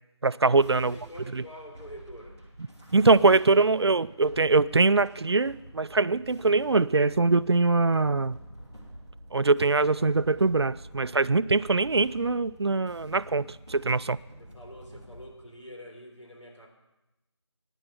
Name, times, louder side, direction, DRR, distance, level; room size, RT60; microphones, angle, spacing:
voice 1, 0.2-0.9 1.3-1.4 2.9-8.4 9.3-13.4 13.7-14.2, right 3 dB, 60° right, 18 dB, 0.4 m, -22 dB
sound 1, 0.6-15.3, right 1 dB, 5° left, 0.6 m, -48 dB
voice 2, 0.9-2.4 14.4-16.7, equal, 85° left, 1 dB, 3.7 m, -46 dB
11.0 x 10.0 x 7.1 m, 0.98 s
figure-of-eight pair, 170°, 15 cm